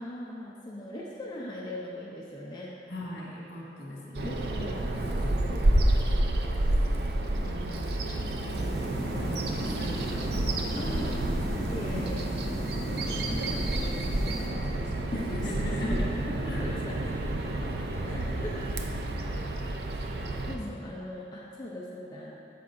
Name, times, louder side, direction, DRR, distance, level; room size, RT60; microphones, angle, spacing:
voice 1, 0.0-2.7 4.2-6.7 9.0-9.8 10.8-11.2 11.7-12.3 13.0-15.2 15.9-16.0 16.6-17.0 18.0-18.6 20.0-22.3, left 1 dB, 25° left, -6 dB, 0.5 m, -41 dB
voice 2, 2.9-4.4 7.4-7.9 9.2-10.5 10.8-11.6 11.9-12.1 13.4-13.5 15.1-16.8 17.1-17.5 17.9-18.4 20.1-20.9, left 1 dB, 65° left, -5 dB, 1.6 m, -40 dB
Bird vocalization bird call bird song, 4.1-20.6, right 1 dB, 65° right, 0.5 m, -29 dB
sound 1, 8.6-14.5, equal, 5° left, 1.2 m, -37 dB
12.5 x 4.7 x 2.6 m, 2.6 s
head